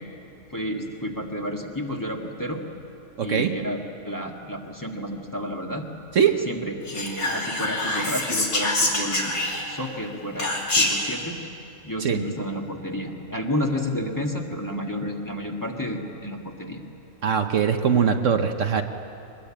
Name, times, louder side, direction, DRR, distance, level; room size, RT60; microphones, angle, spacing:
voice 1, 0.5-2.6 3.2-5.9 6.5-11.4 11.8-16.8, equal, 15° left, 0 dB, 1.8 m, -31 dB
voice 2, 3.2-3.5 6.1-6.4 12.0-12.2 17.2-18.8, right 7 dB, 65° right, 6 dB, 1.2 m, -21 dB
Whispering, 6.9-9.9 10.4-11.1, left 2 dB, 90° left, 3.3 m, -25 dB
22.5 x 21.0 x 8.7 m, 2.7 s
omnidirectional pair, 1.5 m